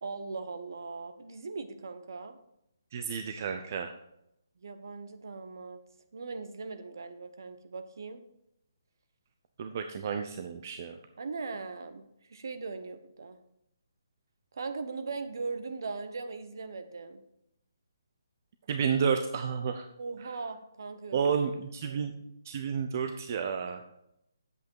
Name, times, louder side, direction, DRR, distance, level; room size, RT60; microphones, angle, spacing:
voice 1, 0.0-2.4 4.6-5.8 6.1-8.2 11.2-13.4 14.5-17.2 20.0-21.4 21.8-22.1, right 4 dB, 65° right, 9 dB, 1.1 m, -39 dB
voice 2, 2.9-3.9 9.6-11.0 18.7-19.9 20.2-20.3 21.1-22.1 22.4-23.8, right 6 dB, 40° right, 6 dB, 0.6 m, -31 dB
8.3 x 8.1 x 4.7 m, 0.81 s
figure-of-eight pair, 150°, 2 cm